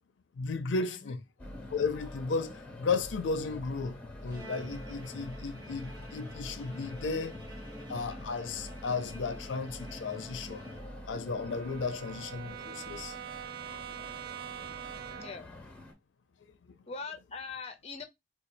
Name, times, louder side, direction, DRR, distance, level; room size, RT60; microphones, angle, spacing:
voice 1, 0.4-1.2 1.7-7.4 7.9-10.6 11.1-13.1 13.7-14.0 14.6-14.8 15.2-15.4, left 4 dB, 85° left, 0.5 m, -34 dB
sound 1, 1.4-15.9, left 1 dB, 10° left, 1.0 m, -46 dB
Bowed string instrument, 4.3-11.3, right 1 dB, 25° right, 1.0 m, -50 dB
Brass instrument, 9.9-15.5, right 9 dB, 55° right, 0.4 m, -45 dB
voice 2, 15.2-15.5 16.9-18.0, left 4 dB, 35° left, 0.6 m, -42 dB
4.0 x 2.3 x 2.5 m
head